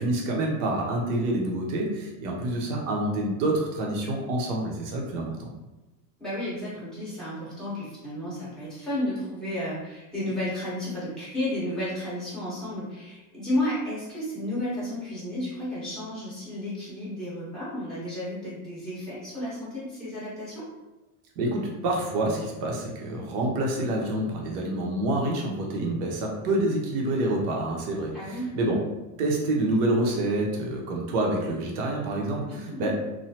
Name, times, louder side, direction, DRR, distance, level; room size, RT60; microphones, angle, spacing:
voice 1, 0.0-5.5 21.4-28.8 29.2-32.9, right 1 dB, 85° right, -1 dB, 1.0 m, -27 dB
voice 2, 6.2-20.6 28.1-28.5 32.5-32.9, left 1 dB, ahead, -10 dB, 1.3 m, -32 dB
3.1 x 2.2 x 2.8 m, 1.1 s
cardioid pair, 150°, 45 cm